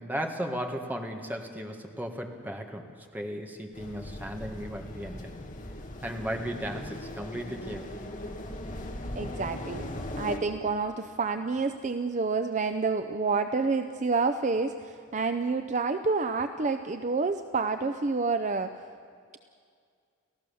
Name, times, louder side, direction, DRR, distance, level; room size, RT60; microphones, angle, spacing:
voice 1, 0.0-5.3 6.0-8.0, equal, 10° right, 3 dB, 1.7 m, -36 dB
sound 1, 3.7-10.4, left 1 dB, 35° left, 1.8 m, -39 dB
voice 2, 9.1-9.9 10.2-18.7, right 4 dB, 35° right, 8 dB, 0.6 m, -28 dB
29.5 x 15.0 x 7.0 m, 2.2 s
head